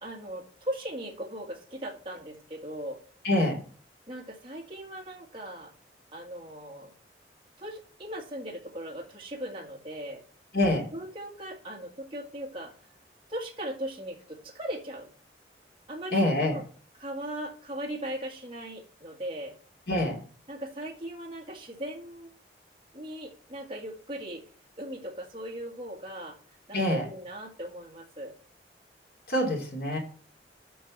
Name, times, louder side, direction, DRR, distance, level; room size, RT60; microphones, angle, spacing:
voice 1, 0.0-3.0 4.1-5.7 6.1-6.9 7.6-10.2 10.9-12.7 13.3-15.1 15.9-16.6 17.0-19.6 20.5-22.3 22.9-24.4 24.8-26.4 26.7-28.3, right 1 dB, 30° right, -1 dB, 1.7 m, -38 dB
voice 2, 3.2-3.6 10.5-10.9 16.1-16.6 19.9-20.2 26.7-27.0 29.3-30.0, left 1 dB, 55° left, 0 dB, 2.8 m, -25 dB
7.1 x 5.3 x 7.2 m, 0.43 s
head